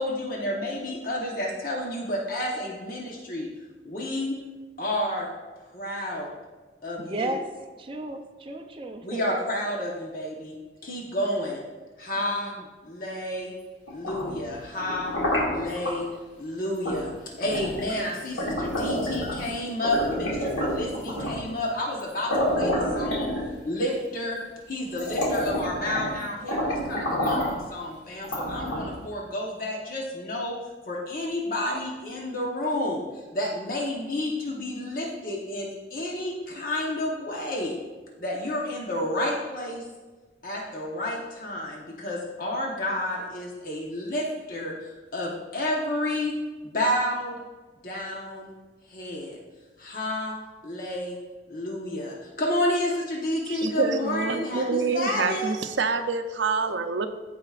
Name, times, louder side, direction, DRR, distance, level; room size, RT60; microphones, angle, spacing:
voice 1, 0.0-3.5 3.8-4.4 4.8-5.3 5.7-6.3 6.8-7.3 9.0-10.6 10.8-11.6 12.0-12.5 12.8-13.5 13.9-15.1 15.5-16.1 16.4-17.1 17.4-23.3 23.6-24.4 24.7-30.6 30.9-33.1 33.3-37.7 38.2-39.8 40.4-46.3 46.6-47.4 47.8-48.5 48.9-49.4 49.8-50.3 50.6-51.2 51.5-55.5, left 1 dB, 45° left, -2 dB, 1.0 m, -30 dB
voice 2, 7.0-7.5 7.8-9.4 12.3-12.6, right 2 dB, 30° right, 4 dB, 0.5 m, -34 dB
sound 1, 13.9-16.0 16.8-17.0 17.4-19.5 19.8-21.5 22.0-22.1 22.3-23.8 24.5-24.6 24.9-26.2 26.5-27.6 28.2-29.0, left 1 dB, 80° left, 2.1 m, -28 dB
voice 3, 53.5-57.1, right 4 dB, 75° right, 8 dB, 0.5 m, -27 dB
14.5 x 4.8 x 2.4 m, 1.3 s
head